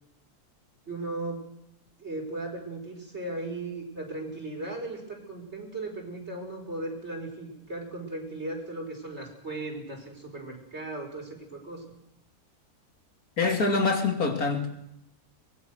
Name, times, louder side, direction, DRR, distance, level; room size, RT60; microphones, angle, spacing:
voice 1, 0.9-1.4 2.0-11.8, right 2 dB, 45° right, 5.5 m, -37 dB
voice 2, 13.4-14.7, left 3 dB, 70° left, 3.2 m, -25 dB
23.5 x 19.5 x 6.5 m
omnidirectional pair, 1.6 m